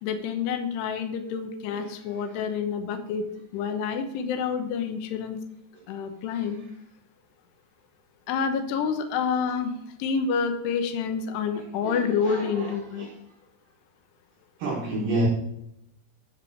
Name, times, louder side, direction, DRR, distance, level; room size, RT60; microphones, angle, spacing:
voice 1, 0.0-5.4 5.9-6.6 8.3-9.7 10.0-13.1, left 6 dB, 80° left, 7 dB, 3.2 m, -28 dB
voice 2, 1.7-2.4 6.3-6.5 11.5-13.2 14.6-15.3, right 1 dB, 60° right, -3 dB, 2.9 m, -31 dB
12.0 x 5.4 x 6.1 m, 0.78 s
omnidirectional pair, 4.9 m